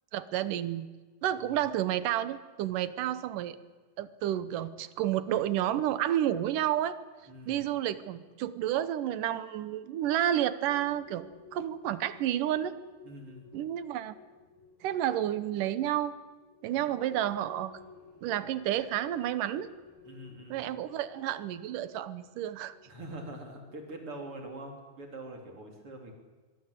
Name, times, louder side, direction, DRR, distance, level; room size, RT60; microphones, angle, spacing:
voice 1, 0.1-0.9 1.2-3.6 4.0-7.0 7.5-12.7 13.5-14.2 14.8-16.2 16.6-17.7 18.2-19.7 20.5-22.7, right 12 dB, 70° right, 14 dB, 2.5 m, -30 dB
voice 2, 7.3-7.6 13.0-13.5 20.0-20.7 22.9-26.1, right 1 dB, 40° right, 2 dB, 4.4 m, -44 dB
sound 1, 10.7-24.4, left 4 dB, 85° left, 7.7 m, -56 dB
24.0 x 22.0 x 8.4 m, 1.3 s
omnidirectional pair, 4.0 m